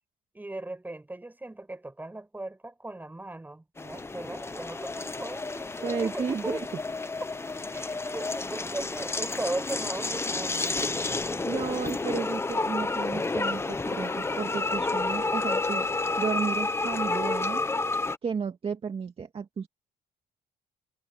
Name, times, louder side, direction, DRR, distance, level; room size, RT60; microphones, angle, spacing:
voice 1, 0.3-6.6 7.7-11.2, right 2 dB, 10° right, 6.1 m, -38 dB
sound 1, 3.8-18.2, left 3 dB, 15° left, 1.0 m, -30 dB
voice 2, 5.8-6.6 11.5-15.9 16.2-17.6 18.2-19.7, right 6 dB, 35° right, 2.1 m, -33 dB
cardioid pair, 110°, 17 cm